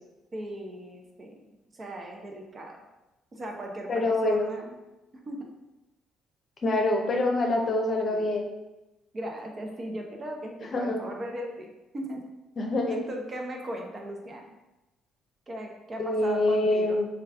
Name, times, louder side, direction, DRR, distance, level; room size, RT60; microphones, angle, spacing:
voice 1, 0.3-1.4 1.7-2.8 3.3-4.8 5.3-5.5 7.4-8.4 9.1-12.2 12.9-14.4 15.5-17.0, right 1 dB, 40° right, 2 dB, 0.7 m, -38 dB
voice 2, 3.9-4.5 6.6-8.5 10.7-11.0 12.6-13.0 16.0-17.1, left 2 dB, 45° left, 1 dB, 0.7 m, -25 dB
3.2 x 2.3 x 3.5 m, 1.0 s
hypercardioid pair, 55°, 0 cm